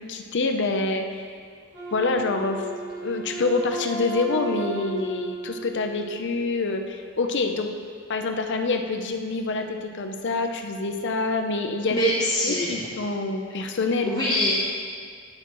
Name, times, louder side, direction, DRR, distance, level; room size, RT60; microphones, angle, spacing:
voice 1, 0.0-1.4 1.9-2.6 3.0-7.7 8.1-12.1 12.4-14.2, left 3 dB, 60° left, 5 dB, 0.7 m, -26 dB
Wind instrument woodwind instrument, 1.7-6.7, right 2 dB, 55° right, 2.1 m, -35 dB
voice 2, 11.9-12.9 14.0-14.7, equal, 20° left, -8 dB, 1.0 m, -24 dB
9.8 x 8.2 x 3.1 m, 2.1 s
head